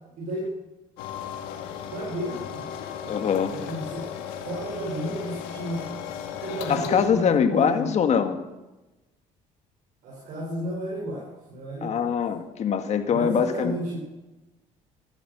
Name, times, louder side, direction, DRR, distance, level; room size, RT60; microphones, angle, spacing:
voice 1, 0.2-0.5 1.9-2.7 3.0-4.1 4.4-5.9 6.4-7.9 10.0-12.1 13.1-14.0, right 1 dB, 70° right, -3 dB, 5.2 m, -32 dB
sound 1, 1.0-7.1, left 8 dB, 90° left, 2.0 m, -36 dB
voice 2, 3.1-3.5 6.7-8.4 11.8-13.7, left 7 dB, 50° left, 8 dB, 1.7 m, -23 dB
14.5 x 11.5 x 6.8 m, 1.1 s
supercardioid pair, 90°, 15 cm